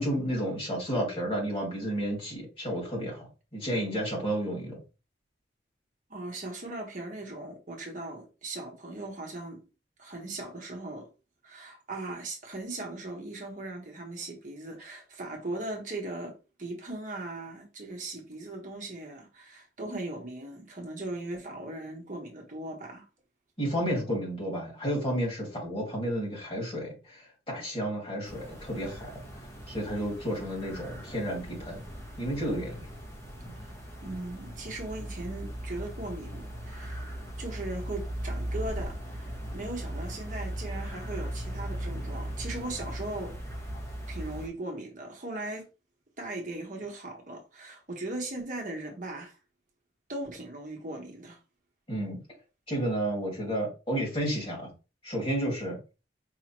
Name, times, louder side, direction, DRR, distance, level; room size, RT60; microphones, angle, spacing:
voice 1, 0.0-3.2 3.5-4.8 23.6-29.1 29.7-31.8 32.2-32.9 33.4-33.5 51.9-52.2 52.7-54.7 55.0-55.8, equal, 30° left, 2.3 m, -31 dB
voice 2, 6.1-9.6 10.0-11.1 11.4-23.0 33.6-33.7 34.0-37.0 37.4-43.3 44.1-45.7 46.2-49.4 50.1-51.4, right 2 dB, 45° right, 1.0 m, -38 dB
sound 1, 28.2-44.5, equal, 15° left, 1.3 m, -38 dB
4.9 x 2.9 x 3.0 m
head